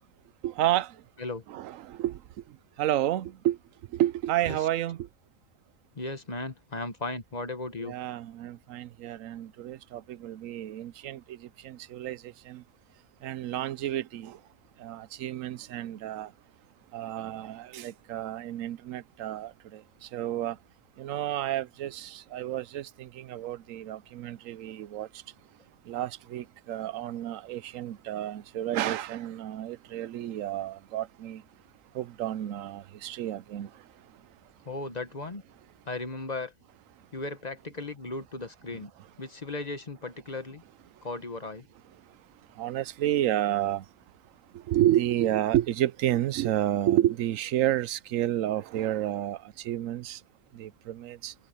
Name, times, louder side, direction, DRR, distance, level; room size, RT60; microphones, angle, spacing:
voice 1, 0.4-0.9 1.5-2.2 2.8-3.6 3.9-5.1 7.8-11.4 11.6-12.6 13.2-14.4 14.8-16.3 16.9-19.8 20.1-20.6 21.0-25.1 25.9-31.4 31.9-33.7 42.6-43.8 44.5-50.2 50.5-51.3, right 13 dB, 85° right, 1.0 m, -30 dB
voice 2, 5.9-7.9 34.6-35.4 35.9-36.5 37.1-38.9 39.2-40.6 41.0-41.7, left 3 dB, 35° left, 1.2 m, -36 dB
omnidirectional pair, 1.3 m